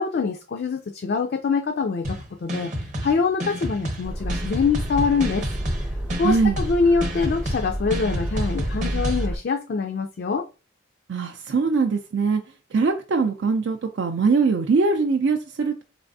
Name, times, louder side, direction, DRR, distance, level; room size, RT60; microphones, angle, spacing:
voice 1, 0.0-5.5 6.2-10.4, left 5 dB, 50° left, 0.3 m, -24 dB
sound 1, 2.0-9.3, equal, 40° right, 0.8 m, -31 dB
sound 2, 4.0-9.4, right 1 dB, 5° right, 0.5 m, -29 dB
voice 2, 6.2-6.6 11.1-12.4 12.7-15.8, right 4 dB, 65° right, 0.4 m, -22 dB
4.0 x 3.3 x 2.6 m
head